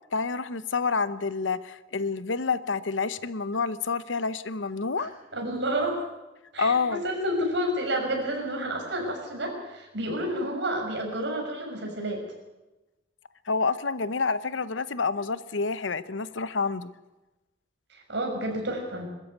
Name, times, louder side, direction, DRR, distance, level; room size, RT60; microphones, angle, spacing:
voice 1, 0.1-5.1 6.6-7.0 13.5-16.9, left 4 dB, 80° left, 15 dB, 0.9 m, -28 dB
voice 2, 5.0-6.0 6.5-12.2 17.9-19.1, right 1 dB, 70° right, 1 dB, 6.3 m, -30 dB
22.0 x 13.5 x 9.5 m, 1.1 s
head